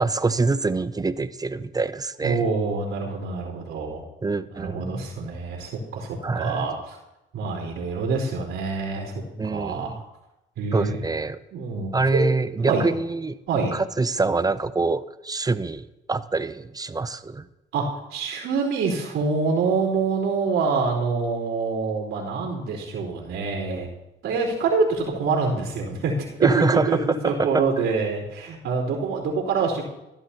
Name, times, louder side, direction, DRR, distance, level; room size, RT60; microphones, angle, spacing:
voice 1, 0.0-2.5 4.2-5.1 6.2-6.7 9.4-10.0 10.7-11.4 11.9-13.4 13.7-17.5 26.4-27.6, right 3 dB, 20° right, 14 dB, 0.5 m, -25 dB
voice 2, 2.2-4.0 4.5-7.0 7.3-9.9 10.6-11.0 11.5-12.3 12.6-12.9 13.5-13.7 17.7-23.9 24.2-27.0 27.2-29.8, right 4 dB, 85° right, -11 dB, 3.6 m, -26 dB
15.0 x 11.5 x 2.9 m, 0.95 s
cardioid pair, 90°, 20 cm